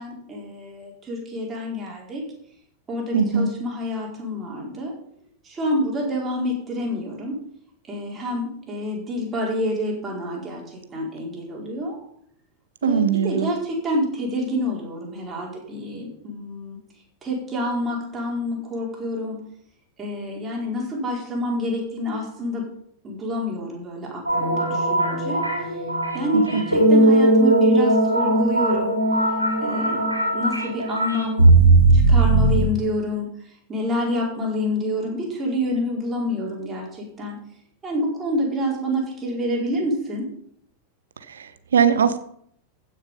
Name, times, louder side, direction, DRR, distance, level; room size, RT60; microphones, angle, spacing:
voice 1, 0.0-2.2 2.9-4.9 5.4-7.4 7.9-12.0 12.8-16.8 17.2-19.4 20.0-22.7 23.0-25.4 26.1-28.9 29.6-30.0 30.3-31.5 31.9-33.3 33.7-37.4 37.8-40.3, left 1 dB, 20° right, -2 dB, 4.6 m, -27 dB
voice 2, 3.1-3.5 12.8-13.5 26.3-26.6 41.3-42.2, right 7 dB, 65° right, 11 dB, 0.9 m, -21 dB
sound 1, 24.3-32.6, right 2 dB, 85° right, 3.4 m, -18 dB
15.5 x 6.7 x 5.5 m, 0.69 s
figure-of-eight pair, 90°, 0 cm